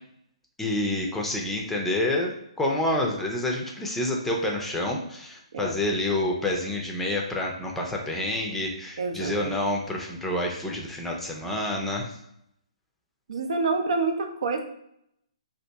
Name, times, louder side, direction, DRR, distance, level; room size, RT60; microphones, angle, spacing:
voice 1, 0.6-2.3 2.6-12.1, left 1 dB, 5° left, -1 dB, 0.5 m, -28 dB
voice 2, 9.0-9.6 13.3-14.6, right 3 dB, 65° right, 4 dB, 0.6 m, -27 dB
2.7 x 2.5 x 3.4 m, 0.74 s
figure-of-eight pair, 130°, 4 cm